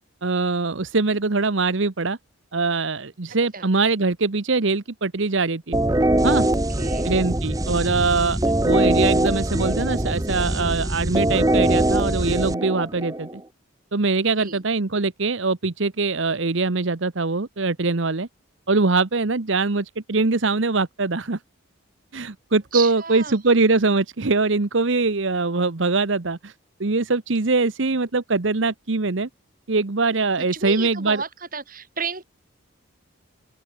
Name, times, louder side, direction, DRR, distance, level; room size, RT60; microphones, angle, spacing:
voice 1, 0.2-2.2 2.5-5.8 6.2-6.5 7.0-8.4 8.6-13.4 13.9-18.3 18.7-21.4 22.1-26.5 26.8-29.3 29.7-31.2, right 3 dB, 65° right, 1.0 m, -22 dB
sound 1, 5.7-13.4, right 1 dB, 15° right, 1.0 m, -22 dB
voice 2, 6.5-7.1 14.3-14.6 22.7-23.4 30.4-32.2, right 5 dB, 45° right, 4.9 m, -32 dB
open air
head